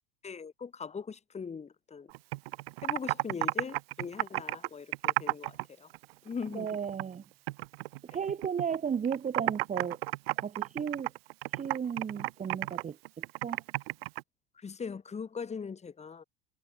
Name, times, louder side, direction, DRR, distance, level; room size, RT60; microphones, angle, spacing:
voice 1, 0.2-2.1 2.8-5.9 6.2-6.7 14.6-16.2, left 5 dB, 20° left, 3.7 m, -40 dB
Computer keyboard, 2.1-5.6 5.9-7.2 7.5-8.8 9.0-14.2, right 20 dB, 70° right, 1.6 m, -32 dB
voice 2, 6.5-7.2 8.1-10.0 10.4-11.1 11.5-13.0 13.4-13.6, right 7 dB, 25° right, 1.8 m, -34 dB
hypercardioid pair, 90°, 31 cm